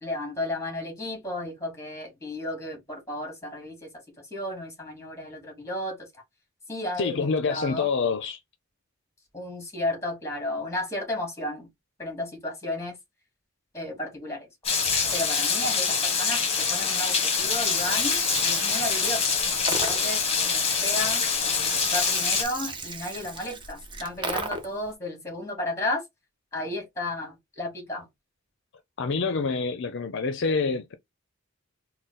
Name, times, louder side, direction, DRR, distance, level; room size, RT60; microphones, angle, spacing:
voice 1, 0.0-3.9 4.2-6.2 6.7-7.9 9.3-11.7 12.0-13.0 13.7-14.5 15.1-19.4 19.7-20.2 20.5-21.2 21.9-26.0 26.5-28.1, left 1 dB, 15° left, 2.1 m, -33 dB
voice 2, 7.0-8.4 29.0-31.0, left 4 dB, 60° left, 0.5 m, -26 dB
Rain, 14.6-22.4, left 5 dB, 30° left, 1.1 m, -25 dB
Gurgling, 17.4-24.9, right 3 dB, 25° right, 0.7 m, -36 dB
3.8 x 2.2 x 4.0 m
head